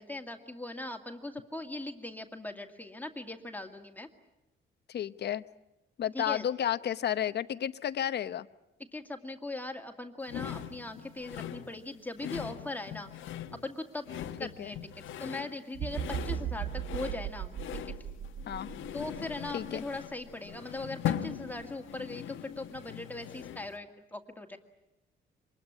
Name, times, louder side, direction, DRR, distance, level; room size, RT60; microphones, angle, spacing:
voice 1, 0.0-4.1 6.1-6.4 8.9-13.1 13.5-14.0 14.4-17.5 17.9-18.0 18.9-24.6, left 2 dB, 10° left, 4 dB, 2.1 m, -40 dB
voice 2, 4.9-5.4 6.0-8.5 14.4-14.7 18.5-18.7 19.5-19.8, left 10 dB, 55° left, 13 dB, 0.9 m, -32 dB
sound 1, 10.3-23.8, left 10 dB, 80° left, 1.3 m, -40 dB
sound 2, 15.7-19.8 20.3-20.5, right 10 dB, 60° right, 1.0 m, -37 dB
25.0 x 21.0 x 9.8 m, 0.98 s
cardioid pair, 90°, 20 cm